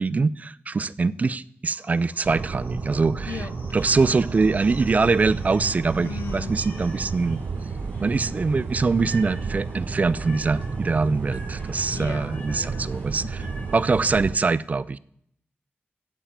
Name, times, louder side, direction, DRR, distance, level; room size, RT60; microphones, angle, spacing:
voice 1, 0.0-3.4 3.7-7.4 8.0-13.2 13.7-15.0, right 4 dB, 40° right, 0.3 m, -23 dB
sound 1, 1.7-7.4, left 1 dB, 55° left, 6.2 m, -51 dB
sound 2, 2.2-14.4, right 4 dB, 70° right, 0.7 m, -32 dB
voice 2, 3.3-4.2 6.0-6.5 11.9-13.7, left 6 dB, 85° left, 0.5 m, -39 dB
sound 3, 4.6-14.2, equal, 35° left, 2.8 m, -47 dB
8.5 x 8.1 x 8.8 m
wide cardioid pair, 140°, 4 cm